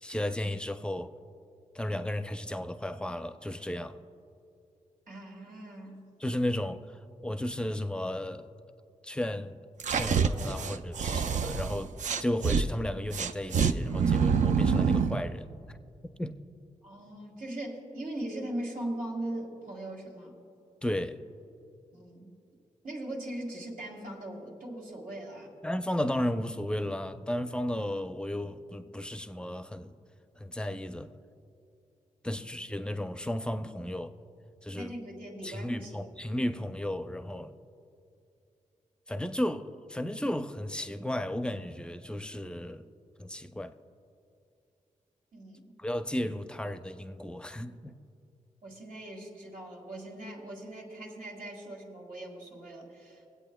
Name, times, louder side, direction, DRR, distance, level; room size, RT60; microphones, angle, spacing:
voice 1, 0.0-1.1 1.7-4.0 6.2-8.5 9.0-9.6 9.9-11.9 12.2-15.5 16.2-16.4 20.8-21.2 25.6-29.9 30.4-31.1 32.2-34.1 34.6-34.9 35.4-37.5 39.1-42.9 43.2-43.8 45.8-47.9, left 1 dB, 5° left, 0.5 m, -34 dB
voice 2, 5.1-6.1 16.8-20.4 21.9-22.3 22.8-25.5 32.3-32.4 34.7-36.1 45.3-45.7 48.6-53.3, right 1 dB, 85° right, 2.0 m, -40 dB
sound 1, 9.8-12.6 13.1-15.2, right 6 dB, 65° right, 0.4 m, -26 dB
24.5 x 8.2 x 2.3 m
cardioid pair, 80°, 14 cm